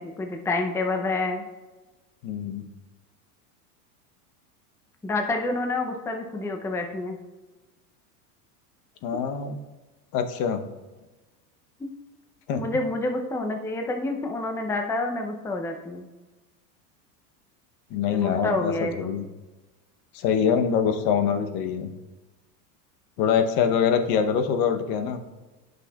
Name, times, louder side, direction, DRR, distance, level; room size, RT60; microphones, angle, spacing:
voice 1, 0.0-1.5 5.0-7.2 11.8-11.9 12.6-16.0 18.1-19.1, left 2 dB, 5° left, 4 dB, 0.5 m, -28 dB
voice 2, 2.2-2.6 9.0-9.6 10.1-10.6 12.5-12.6 17.9-19.3 20.1-21.9 23.2-25.2, left 7 dB, 50° left, 7 dB, 0.9 m, -24 dB
9.8 x 6.1 x 2.3 m, 1.2 s
hypercardioid pair, 110°, 47 cm